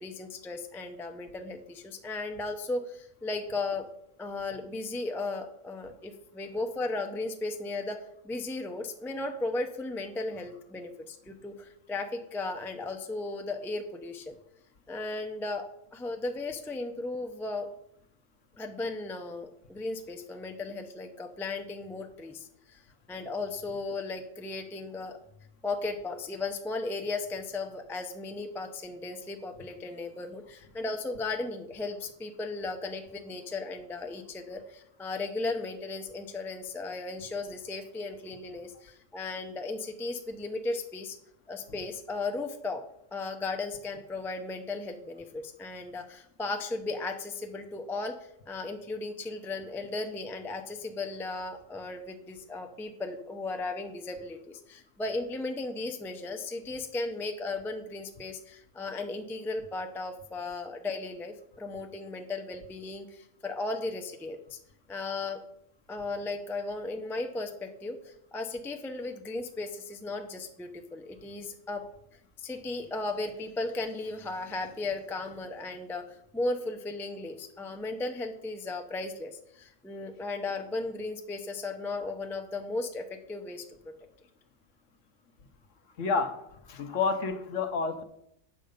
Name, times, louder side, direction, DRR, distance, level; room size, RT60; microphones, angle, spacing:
voice 1, 0.0-3.9 4.2-8.0 8.2-14.3 14.9-15.7 15.9-17.7 18.6-22.8 23.1-25.2 25.6-41.2 41.5-42.8 43.1-48.2 48.5-64.6 64.9-65.4 65.9-71.8 72.4-83.6, left 3 dB, 5° left, 5 dB, 0.4 m, -36 dB
voice 2, 86.0-86.4 86.6-88.0, left 4 dB, 65° left, 8 dB, 1.2 m, -29 dB
8.3 x 6.5 x 5.1 m, 0.75 s
omnidirectional pair, 1.4 m